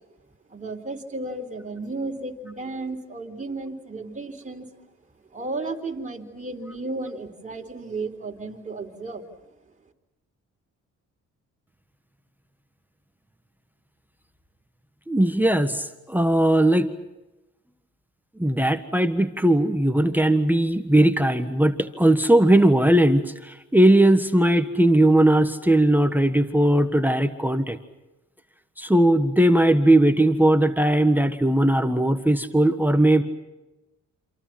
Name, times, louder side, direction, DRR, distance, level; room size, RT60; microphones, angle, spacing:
voice 1, 0.5-4.7 5.3-9.3, right 3 dB, 25° right, 1 dB, 3.9 m, -33 dB
voice 2, 15.1-16.9 18.4-27.8 28.8-33.2, right 1 dB, 5° right, 8 dB, 1.5 m, -19 dB
28.0 x 27.0 x 6.0 m, 1.0 s
cardioid pair, 90°, 30 cm